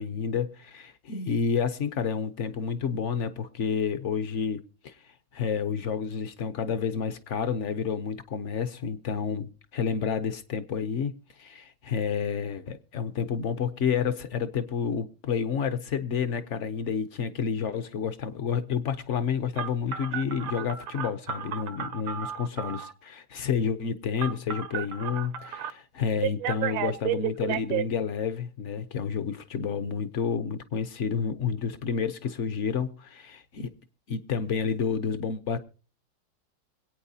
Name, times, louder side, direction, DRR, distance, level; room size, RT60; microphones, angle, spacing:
voice 1, 0.0-33.7 34.1-35.6, left 6 dB, 65° left, 0.7 m, -30 dB
Telephone, 19.6-22.9 24.2-25.7 26.2-27.8, right 10 dB, 80° right, 1.5 m, -32 dB
25.5 x 8.8 x 2.7 m
omnidirectional pair, 2.1 m